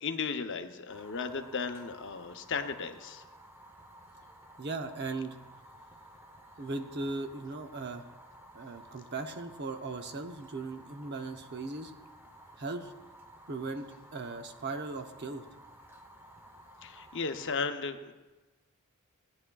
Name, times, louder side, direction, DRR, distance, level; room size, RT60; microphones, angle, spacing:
voice 1, 0.0-3.2 16.8-18.1, left 5 dB, 60° left, 7 dB, 0.7 m, -35 dB
Fire, 0.9-17.5, right 1 dB, 10° right, 0.8 m, -54 dB
voice 2, 4.6-5.4 6.6-8.0 8.5-11.9 12.6-12.9 13.5-13.9 14.1-15.4, right 3 dB, 50° right, 6 dB, 0.8 m, -38 dB
17.0 x 9.6 x 2.3 m, 1.2 s
head